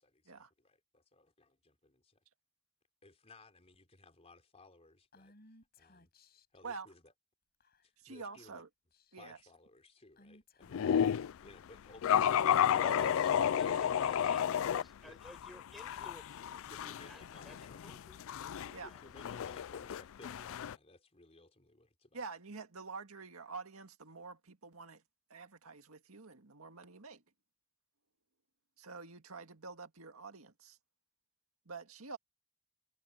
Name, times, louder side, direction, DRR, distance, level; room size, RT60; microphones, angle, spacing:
voice 1, 0.2-2.0 3.0-5.3 5.8-6.1 6.5-7.0 8.1-8.5 9.2-10.9 11.4-12.4 12.7-14.3 15.0-15.2 16.7-17.8 18.6-22.2, left 2 dB, 30° left, 4.0 m, -59 dB
Female speech woman speaking / Whispering, 5.1-6.6 7.6-8.0 8.4-8.6 8.9-9.4 10.2-11.3 12.2-14.1, left 2 dB, 45° left, 8.0 m, -63 dB
voice 2, 6.6-6.9 8.0-8.7 9.1-9.4 18.7-18.9 22.1-25.0 25.3-27.2 28.8-30.8 31.7-32.2, right 4 dB, 70° right, 2.0 m, -47 dB
sound 1, 10.7-11.3 12.0-14.8 15.3-20.8, left 9 dB, 65° left, 0.4 m, -32 dB
voice 3, 12.4-18.2 18.5-19.2 19.6-19.7, equal, ahead, 7.2 m, -54 dB
head